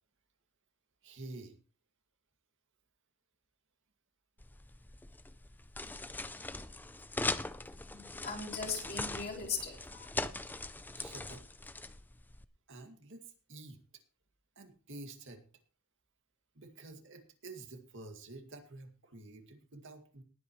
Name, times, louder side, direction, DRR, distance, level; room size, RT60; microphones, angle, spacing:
voice 1, 1.0-1.6 10.9-11.4 12.7-13.8 14.6-15.4 16.5-20.2, right 2 dB, 60° right, 5 dB, 2.2 m, -49 dB
sound 1, 4.4-12.4, left 2 dB, 10° left, 0.4 m, -41 dB
voice 2, 7.9-10.1, left 5 dB, 45° left, -1 dB, 3.4 m, -39 dB
19.5 x 8.7 x 3.1 m, 0.36 s
head